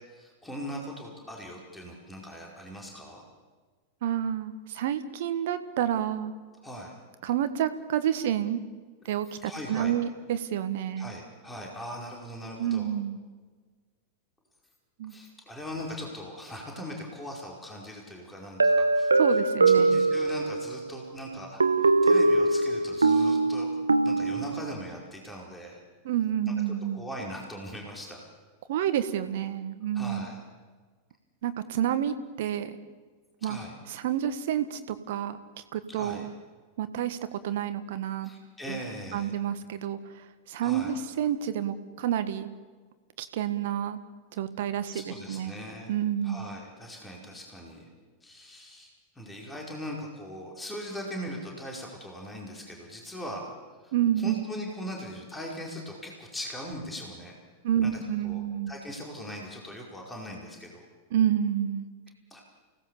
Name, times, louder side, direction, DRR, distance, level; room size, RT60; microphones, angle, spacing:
voice 1, 0.1-3.2 6.6-6.9 9.4-9.9 11.0-12.9 15.1-19.4 19.7-23.7 24.0-25.8 26.9-28.2 29.9-30.4 33.4-33.7 35.9-36.3 38.2-39.3 40.6-40.9 44.9-45.9 46.2-47.9 48.2-48.9 49.1-53.5 53.8-57.4 57.8-58.0 58.2-60.9 62.3-62.4, equal, 10° left, -1 dB, 4.7 m, -40 dB
voice 2, 4.0-6.3 7.2-8.6 9.0-11.1 12.6-13.2 15.0-15.1 19.1-20.1 26.0-27.0 28.7-30.3 31.4-32.8 33.4-33.6 33.9-35.4 35.7-36.3 36.8-38.3 38.7-38.8 39.1-40.0 40.5-42.5 43.2-44.0 44.3-45.5 45.9-46.5 53.9-54.3 57.6-58.8 61.1-61.8, right 10 dB, 55° right, 11 dB, 1.6 m, -29 dB
sound 1, 18.6-20.8 21.6-24.7, right 3 dB, 75° right, 1.0 m, -22 dB
29.5 x 18.0 x 7.1 m, 1.4 s
figure-of-eight pair, 90°, 0 cm